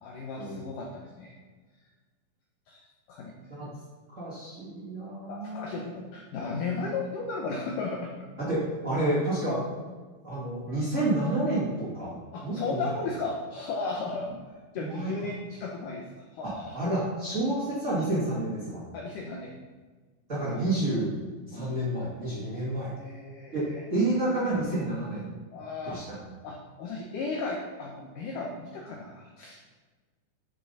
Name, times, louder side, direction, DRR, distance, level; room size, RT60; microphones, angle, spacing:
voice 1, 0.0-1.3 2.7-2.8 3.1-3.4 5.3-8.1 12.3-14.3 14.7-16.0 16.3-16.8 18.9-19.5 20.5-20.6 21.5-21.7 23.0-23.8 25.5-26.0 26.4-29.6, left 3 dB, 80° left, 0 dB, 2.0 m, -35 dB
voice 2, 4.1-5.8 8.4-9.6 10.2-12.2 12.4-12.9 14.8-15.1 16.4-18.8 20.3-21.2 21.5-22.9 23.5-23.6 23.9-25.3 25.9-26.3, right 1 dB, 25° right, -8 dB, 1.9 m, -29 dB
9.8 x 6.9 x 4.1 m, 1.4 s
omnidirectional pair, 4.9 m